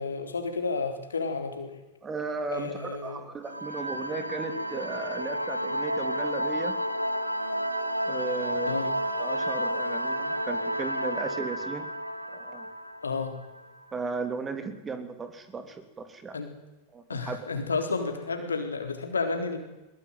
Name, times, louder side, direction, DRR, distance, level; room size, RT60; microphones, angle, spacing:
voice 1, 0.0-1.7 2.5-3.2 8.7-8.9 13.0-13.4 16.3-16.5 17.1-19.6, left 4 dB, 75° left, 6 dB, 4.1 m, -31 dB
voice 2, 2.0-6.8 8.0-8.9 9.2-11.9 12.3-12.7 13.9-16.4 16.9-17.4, right 4 dB, 20° right, 8 dB, 3.4 m, -36 dB
sound 1, 3.5-13.8, equal, 90° left, 1.5 m, -31 dB
22.5 x 21.5 x 9.4 m, 1.0 s
figure-of-eight pair, 90°, 0 cm